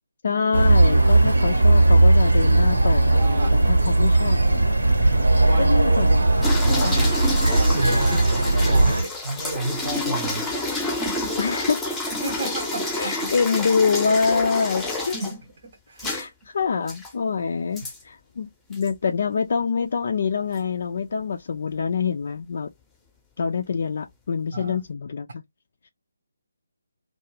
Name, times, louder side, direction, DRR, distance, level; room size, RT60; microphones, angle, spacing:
voice 1, 0.2-4.4 5.6-6.2 6.7-7.1 7.7-8.2 11.4-11.8 12.9-15.2 16.1-22.7 23.4-25.4, left 5 dB, 50° left, 0.3 m, -25 dB
sound 1, 0.5-9.0, right 2 dB, 75° right, 1.0 m, -18 dB
voice 2, 3.1-3.6 4.5-7.2 7.4-10.7 11.0-11.3 12.1-13.3 14.8-16.2 24.5-24.8, right 2 dB, 50° right, 0.7 m, -32 dB
sound 2, 6.4-15.3 16.0-16.2 16.9-17.1 17.8-18.0 18.7-18.9, left 2 dB, 5° left, 0.7 m, -29 dB
2.3 x 2.3 x 3.1 m
figure-of-eight pair, 150°, 0 cm